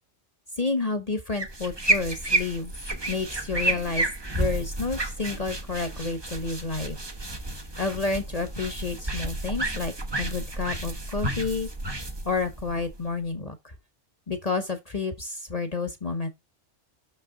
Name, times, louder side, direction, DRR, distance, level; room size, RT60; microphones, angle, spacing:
voice 1, 0.6-2.7 3.1-4.1 4.3-7.0 7.8-11.7 12.2-13.7 14.3-16.3, left 4 dB, 35° left, 1.2 m, -30 dB
sound 1, 1.3-13.3, right 2 dB, 20° right, 1.1 m, -31 dB
6.6 x 5.7 x 3.9 m
omnidirectional pair, 1.2 m